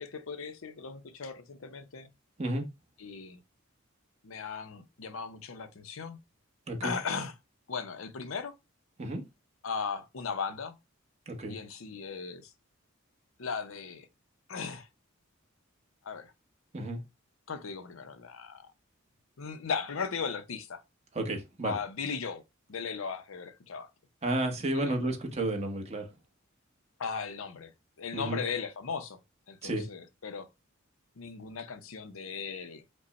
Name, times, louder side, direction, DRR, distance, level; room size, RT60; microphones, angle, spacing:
voice 1, 0.0-2.1 3.0-3.4 4.2-6.2 6.8-7.3 7.7-8.5 9.6-10.7 11.5-12.5 13.4-14.1 14.5-14.9 16.0-16.3 17.5-18.7 19.4-20.8 21.6-22.4 22.7-23.9 24.7-25.0 27.0-27.7 28.0-29.2 29.5-30.5 31.2-32.8, left 5 dB, 80° left, 0.7 m, -37 dB
voice 2, 11.3-11.6 16.7-17.0 21.1-21.8 24.2-26.1 28.1-28.4 29.6-29.8, right 1 dB, 30° right, 1.0 m, -32 dB
5.2 x 2.2 x 4.0 m
head